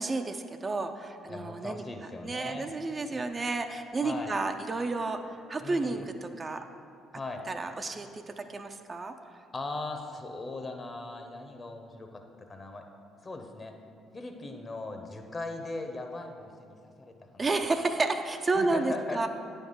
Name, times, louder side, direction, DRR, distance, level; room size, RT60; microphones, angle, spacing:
voice 1, 0.0-1.8 2.2-6.6 7.5-9.1 17.4-19.3, right 3 dB, 30° right, 6 dB, 0.4 m, -31 dB
voice 2, 1.3-2.7 3.1-3.2 4.0-4.3 5.6-6.0 7.1-7.4 9.5-12.2 12.5-12.8 13.2-13.7 14.1-17.5 18.5-19.2, left 2 dB, 35° left, 5 dB, 0.9 m, -39 dB
9.1 x 3.5 x 5.6 m, 2.4 s
hypercardioid pair, 55°, 0 cm